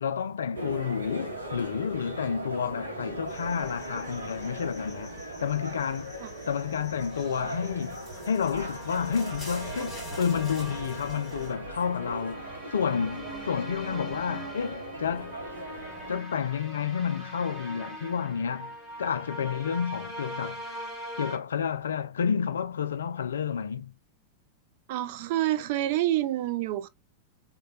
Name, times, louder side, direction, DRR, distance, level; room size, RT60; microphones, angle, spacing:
voice 1, 0.0-6.2 6.5-15.4 16.1-18.7 19.0-20.6 21.2-23.9, left 7 dB, 65° left, 0.3 m, -30 dB
sound 1, 0.5-16.2, right 1 dB, 80° right, 0.7 m, -39 dB
sound 2, 3.3-11.5, left 1 dB, 10° left, 1.6 m, -46 dB
sound 3, 8.0-21.4, right 1 dB, 20° right, 1.2 m, -42 dB
voice 2, 24.9-26.9, right 14 dB, 50° right, 0.3 m, -27 dB
3.1 x 2.1 x 2.4 m
figure-of-eight pair, 90°, 0 cm